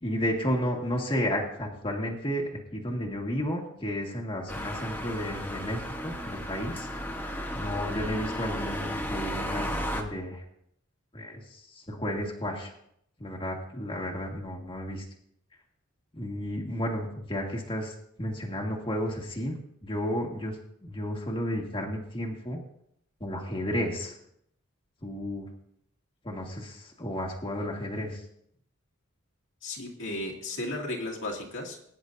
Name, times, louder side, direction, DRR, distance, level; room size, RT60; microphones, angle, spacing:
voice 1, 0.0-6.9 7.5-10.4 11.1-12.7 13.2-15.0 16.2-19.5 19.8-20.6 20.8-22.6 23.2-24.2 25.0-25.5 26.2-28.2, equal, 25° left, -1 dB, 1.8 m, -32 dB
sound 1, 4.5-10.0, equal, 10° left, 1.1 m, -34 dB
voice 2, 29.6-31.8, left 1 dB, 65° left, -2 dB, 2.4 m, -34 dB
21.0 x 10.0 x 2.7 m, 0.71 s
head